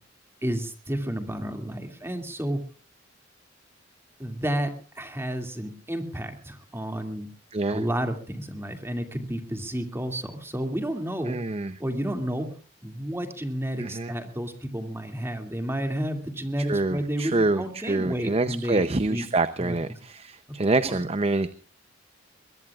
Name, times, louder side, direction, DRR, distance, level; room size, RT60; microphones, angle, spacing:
voice 1, 0.4-2.6 4.2-7.3 7.7-11.4 11.8-12.5 12.8-18.8 19.1-19.3 19.6-20.0 20.5-20.6 20.8-21.0, right 1 dB, 15° right, 5 dB, 2.4 m, -31 dB
voice 2, 7.5-7.8 11.3-11.8 13.8-14.1 16.6-21.5, right 2 dB, 30° right, 12 dB, 0.7 m, -26 dB
23.0 x 22.0 x 2.4 m, 0.38 s
head